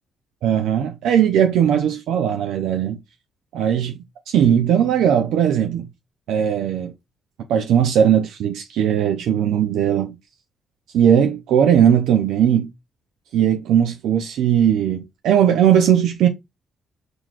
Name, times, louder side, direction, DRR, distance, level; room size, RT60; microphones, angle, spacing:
voice 1, 0.4-3.0 3.5-4.0 4.3-5.9 6.3-6.9 7.5-10.2 10.9-12.7 13.3-16.3, right 9 dB, 85° right, 0.5 m, -18 dB
4.8 x 3.9 x 2.4 m
cardioid pair, 90°, 0 cm